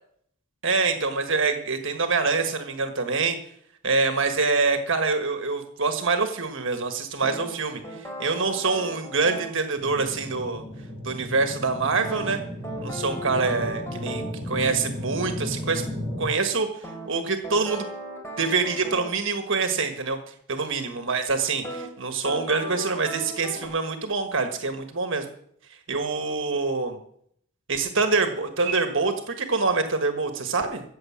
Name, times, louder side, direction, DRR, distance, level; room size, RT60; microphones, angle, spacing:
voice 1, 0.6-3.4 3.8-7.8 8.2-10.6 11.0-12.4 12.8-15.9 16.2-16.7 17.1-17.9 18.4-25.2 25.9-27.0 27.7-30.8, right 4 dB, 60° right, 6 dB, 1.5 m, -25 dB
sound 1, 7.2-9.6 12.0-14.4 16.8-19.2 21.6-21.9 22.2-23.7, right 1 dB, 15° left, 3.3 m, -36 dB
sound 2, 9.8-16.3, left 1 dB, 25° right, 4.5 m, -34 dB
14.5 x 7.9 x 7.4 m, 0.67 s
head